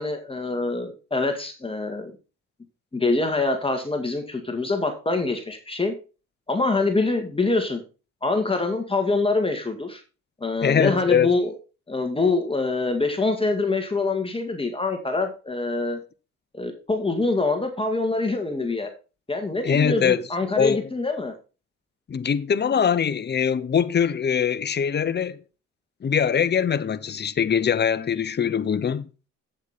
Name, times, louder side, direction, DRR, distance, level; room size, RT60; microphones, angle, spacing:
voice 1, 0.0-2.2 2.9-5.9 6.5-7.8 8.2-10.0 10.4-11.5 11.9-16.0 16.5-18.9 19.3-21.3, left 3 dB, 20° left, 1.9 m, -25 dB
voice 2, 10.6-11.3 19.6-20.2 20.6-20.9 22.1-25.4 26.0-29.1, left 7 dB, 35° left, 0.9 m, -22 dB
8.3 x 8.1 x 4.2 m
cardioid pair, 90°, 30 cm